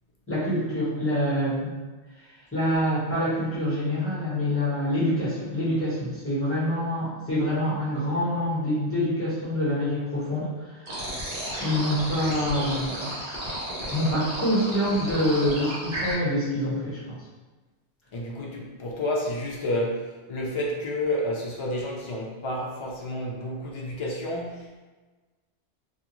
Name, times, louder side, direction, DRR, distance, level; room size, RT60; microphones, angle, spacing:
voice 1, 0.3-1.7 2.5-10.9 11.6-13.1 13.9-17.2, equal, 10° left, -9 dB, 1.1 m, -26 dB
sound 1, 10.9-16.1, right 1 dB, 55° right, 1.0 m, -33 dB
voice 2, 18.1-24.8, left 1 dB, 50° left, -3 dB, 0.3 m, -30 dB
2.4 x 2.4 x 2.9 m, 1.2 s
omnidirectional pair, 1.1 m